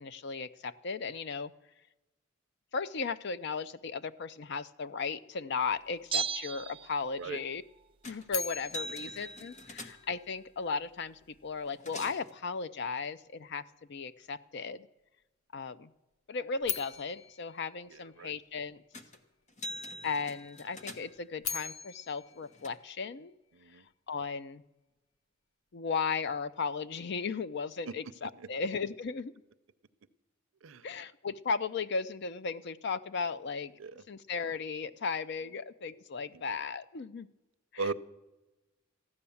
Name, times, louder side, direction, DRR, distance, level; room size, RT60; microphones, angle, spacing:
voice 1, 0.0-1.5 2.7-7.6 8.1-13.6 13.9-14.9 15.5-15.9 16.3-18.8 20.0-23.3 24.1-24.6 25.7-29.3 30.8-33.7 34.1-37.3 37.7-37.9, left 5 dB, 55° left, 14 dB, 0.5 m, -36 dB
Bell, 6.1-7.5 7.8-7.9, right 7 dB, 25° right, 0.4 m, -36 dB
sound 1, 8.0-8.3 8.6-10.2 11.2-11.3 11.6-12.3 18.9-19.2 19.5-21.3 22.1-22.7, left 1 dB, 35° left, 1.1 m, -44 dB
sound 2, 8.3-10.4 16.6-18.8 21.1-23.6, left 7 dB, 85° left, 0.9 m, -41 dB
voice 2, 17.9-18.3 23.5-23.9 27.8-27.9 28.4-28.5 30.6-30.9 33.8-34.0 36.3-36.4 37.8-37.9, right 4 dB, 85° right, 14 dB, 0.6 m, -38 dB
14.5 x 9.8 x 7.0 m, 1.0 s
head